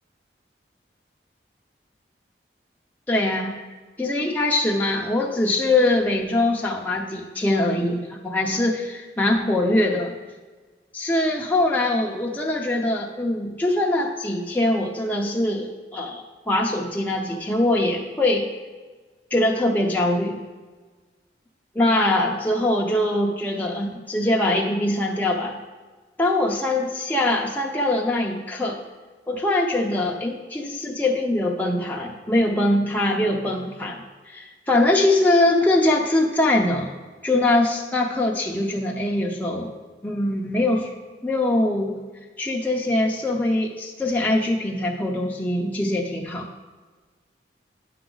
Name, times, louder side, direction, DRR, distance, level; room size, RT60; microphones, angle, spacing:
voice 1, 3.1-3.6 4.0-10.2 10.9-18.5 19.3-20.4 21.7-25.5 26.2-28.8 29.3-36.9 37.2-39.7 40.0-40.9 41.2-42.0 42.4-46.5, left 1 dB, 10° left, -2 dB, 0.6 m, -22 dB
9.6 x 5.9 x 3.9 m, 1.3 s
head